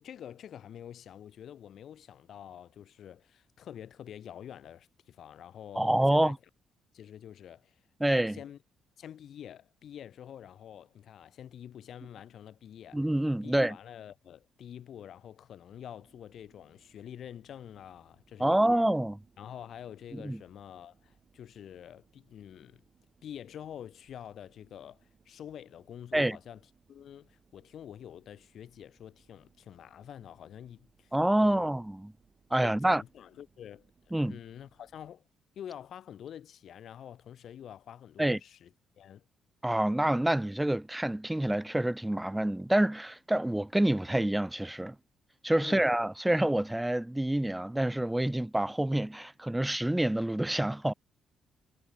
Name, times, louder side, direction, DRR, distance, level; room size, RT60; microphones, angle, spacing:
voice 1, 0.0-6.3 6.9-7.8 8.3-8.6 9.0-13.0 13.4-18.9 19.4-22.8 23.2-26.6 26.9-31.1 31.4-31.7 32.6-33.9 34.2-35.2 35.5-39.2 45.6-45.9, left 9 dB, 65° left, 0.6 m, -47 dB
voice 2, 5.7-6.4 8.0-8.4 12.9-13.8 18.4-19.2 20.1-20.4 26.1-26.4 31.1-32.1 32.5-33.0 34.1-34.4 38.2-38.4 39.6-45.0 45.4-50.9, right 1 dB, 5° right, 0.3 m, -27 dB
sound 1, 15.7-35.1, right 5 dB, 40° right, 6.1 m, -68 dB
cardioid pair, 90°, 0 cm